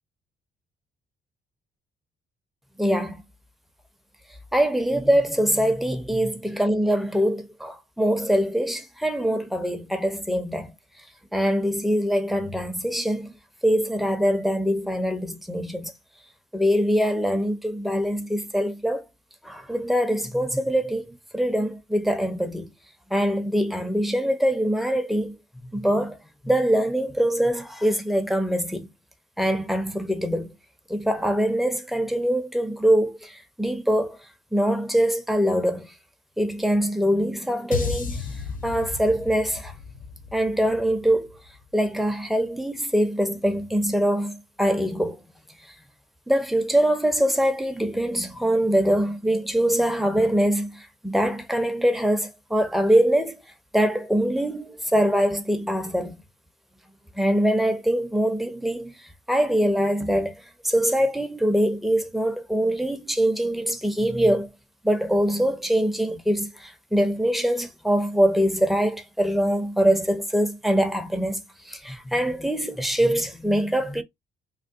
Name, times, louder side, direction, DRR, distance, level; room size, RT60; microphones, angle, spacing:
voice 1, 2.8-3.2 4.5-10.7 11.3-13.3 13.6-15.9 16.5-19.0 19.4-22.7 23.1-26.2 26.4-28.9 29.4-30.5 30.9-34.2 34.5-35.9 36.4-39.7 40.3-41.3 41.7-45.2 46.3-53.4 53.7-56.2 57.2-60.4 60.6-64.5 64.8-74.0, equal, ahead, 0.7 m, -23 dB
sound 1, 37.7-42.1, left 5 dB, 45° left, 0.7 m, -34 dB
3.4 x 2.2 x 2.6 m
cardioid pair, 90°, 20 cm